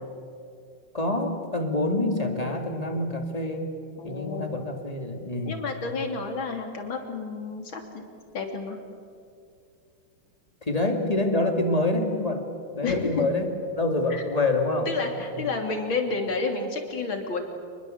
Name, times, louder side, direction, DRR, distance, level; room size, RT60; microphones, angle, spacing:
voice 1, 0.9-3.7 4.0-5.7 10.6-12.5 12.7-14.9 15.3-15.5, left 2 dB, 15° left, 4 dB, 2.6 m, -26 dB
voice 2, 4.0-4.6 5.4-8.1 8.3-8.8 12.8-13.3 14.1-14.2 14.9-17.4, left 4 dB, 65° left, 4 dB, 3.7 m, -30 dB
28.5 x 21.5 x 8.0 m, 2.4 s
omnidirectional pair, 2.4 m